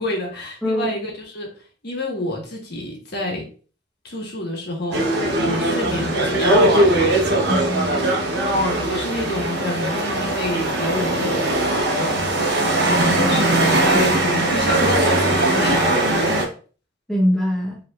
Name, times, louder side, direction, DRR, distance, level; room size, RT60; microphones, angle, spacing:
voice 1, 0.0-1.5 1.8-3.5 4.0-5.2 5.5-7.1 8.5-11.5 12.0-12.4 12.8-16.3, left 1 dB, 55° left, 0 dB, 1.5 m, -28 dB
voice 2, 0.6-0.9 7.5-8.1 13.8-14.1 14.5-14.7 16.2-16.4 17.1-17.8, equal, ahead, -4 dB, 1.0 m, -24 dB
sound 1, 4.9-16.4, right 1 dB, 60° right, 1.1 m, -20 dB
5.6 x 3.4 x 2.4 m, 0.39 s
head